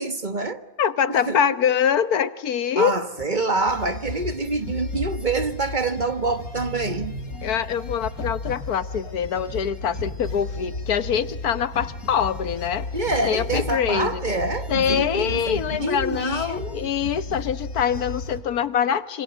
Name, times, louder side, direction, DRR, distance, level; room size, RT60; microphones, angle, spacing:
voice 1, 0.0-0.6 1.1-1.4 2.7-7.1 12.9-16.9, right 3 dB, 30° right, 1.5 m, -26 dB
voice 2, 0.8-2.9 7.4-12.9 13.2-14.2 14.7-19.2, left 8 dB, 85° left, 1.6 m, -24 dB
sound 1, 3.7-18.4, left 2 dB, 70° left, 3.8 m, -34 dB
27.0 x 26.5 x 7.4 m
omnidirectional pair, 1.6 m